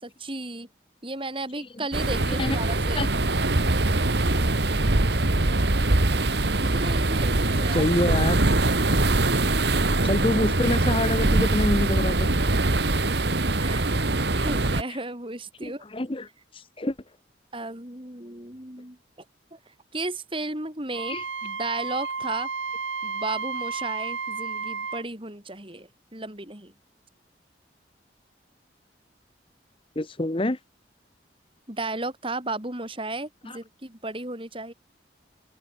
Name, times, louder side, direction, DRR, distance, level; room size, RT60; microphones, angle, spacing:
voice 1, 0.0-0.7 1.0-3.0 6.6-7.9 13.6-13.9 14.3-15.8 17.5-19.0 19.5-22.5 23.0-26.7 31.7-34.7, right 2 dB, 30° right, 5.1 m, -34 dB
sound 1, 1.9-14.8, right 2 dB, 65° right, 1.8 m, -23 dB
voice 2, 7.7-8.4 10.0-12.3 15.6-16.9 21.1-21.2 30.0-30.6 33.5-33.6, left 1 dB, 30° left, 1.0 m, -27 dB
Wind instrument woodwind instrument, 20.9-25.0, right 5 dB, 85° right, 4.3 m, -32 dB
open air
head